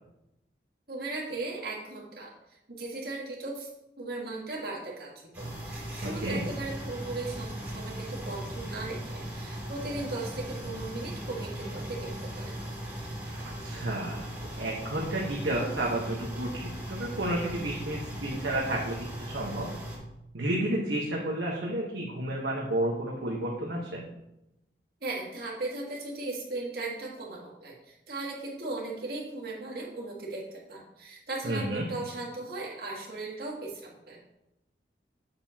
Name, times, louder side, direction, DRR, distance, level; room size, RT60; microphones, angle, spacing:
voice 1, 0.9-3.7 4.0-5.1 5.4-12.5 25.0-34.3, right 2 dB, 55° right, -3 dB, 2.0 m, -37 dB
sound 1, 5.3-20.0, right 1 dB, 10° right, 2.2 m, -38 dB
voice 2, 6.0-6.4 13.3-19.7 20.3-24.0 31.4-31.9, right 1 dB, 85° right, -3 dB, 1.2 m, -31 dB
7.8 x 6.8 x 2.9 m, 0.89 s
head